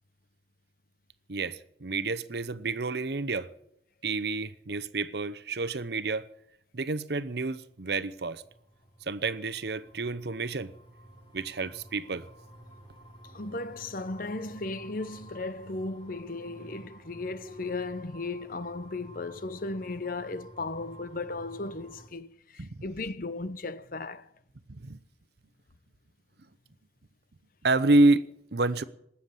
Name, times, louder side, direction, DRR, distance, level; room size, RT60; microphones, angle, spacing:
voice 1, 1.3-3.5 4.0-6.3 6.7-8.4 9.1-10.7 11.3-12.3 22.6-22.8 24.7-25.0 27.6-28.2 28.5-28.8, right 2 dB, 60° right, 0.8 m, -28 dB
sound 1, 7.7-22.1, right 1 dB, 25° left, 3.3 m, -52 dB
voice 2, 13.3-24.3, left 3 dB, 50° left, 0.8 m, -36 dB
19.0 x 7.2 x 9.7 m
head